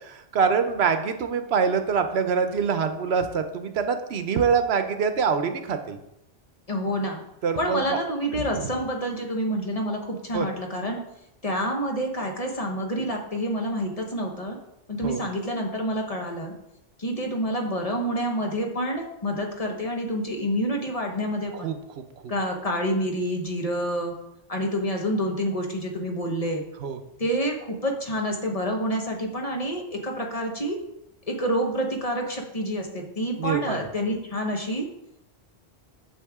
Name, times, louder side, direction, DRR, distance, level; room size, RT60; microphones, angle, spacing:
voice 1, 0.1-6.0 7.4-7.8 8.6-8.7 10.3-10.5 15.0-15.2 21.6-21.7 26.8-27.0 33.4-33.8, right 6 dB, 75° right, 8 dB, 1.0 m, -24 dB
voice 2, 6.7-7.2 7.6-11.0 11.4-14.6 14.9-16.5 17.0-21.7 22.3-24.1 24.5-26.6 27.2-30.8 31.3-34.8, equal, 35° left, 1 dB, 1.2 m, -28 dB
8.4 x 7.2 x 3.6 m, 0.84 s
omnidirectional pair, 1.1 m